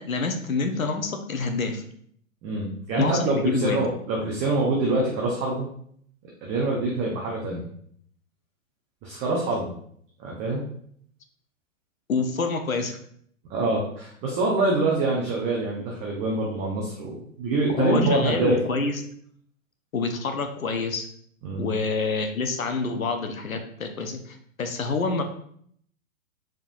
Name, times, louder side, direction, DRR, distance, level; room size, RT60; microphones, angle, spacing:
voice 1, 0.0-1.8 3.0-3.8 12.1-13.0 17.7-19.0 19.9-21.1 21.6-25.2, left 4 dB, 85° left, 6 dB, 0.7 m, -27 dB
voice 2, 2.4-5.7 6.4-7.7 9.0-9.7 10.2-10.6 13.5-18.6 21.4-21.6, right 2 dB, 20° right, -2 dB, 0.5 m, -25 dB
4.6 x 3.6 x 2.5 m, 0.63 s
figure-of-eight pair, 110°, 40 cm